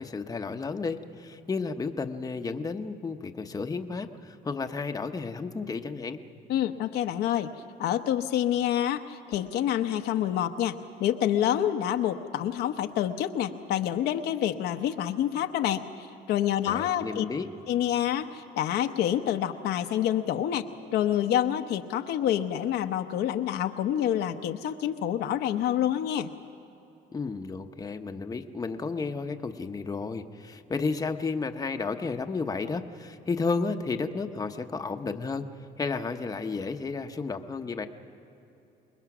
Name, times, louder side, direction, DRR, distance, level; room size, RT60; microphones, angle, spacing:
voice 1, 0.0-6.2 16.6-17.5 27.1-35.5 35.8-37.9, left 4 dB, 20° left, 6 dB, 0.9 m, -32 dB
voice 2, 6.5-7.5 7.8-17.2 17.7-26.3, left 11 dB, 75° left, 6 dB, 0.9 m, -27 dB
27.5 x 21.0 x 6.1 m, 3.0 s
cardioid pair, 110°, 17 cm